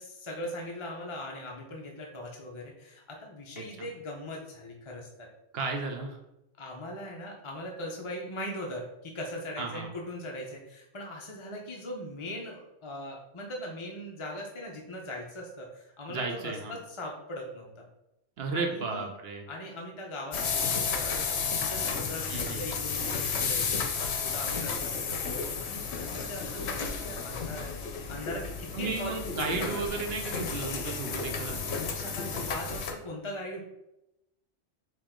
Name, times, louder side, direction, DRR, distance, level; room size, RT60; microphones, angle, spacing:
voice 1, 0.0-5.3 6.6-17.9 18.5-19.1 19.5-21.3 21.6-27.7 28.1-29.8 31.9-33.6, left 1 dB, 35° left, -1 dB, 0.6 m, -40 dB
voice 2, 5.5-6.2 9.6-9.9 16.1-16.8 18.4-19.4 22.3-22.6 28.7-31.6, right 4 dB, 65° right, 3 dB, 0.8 m, -34 dB
sound 1, 20.3-32.9, left 5 dB, 70° left, 0.9 m, -32 dB
4.8 x 3.0 x 3.6 m, 0.88 s
omnidirectional pair, 1.2 m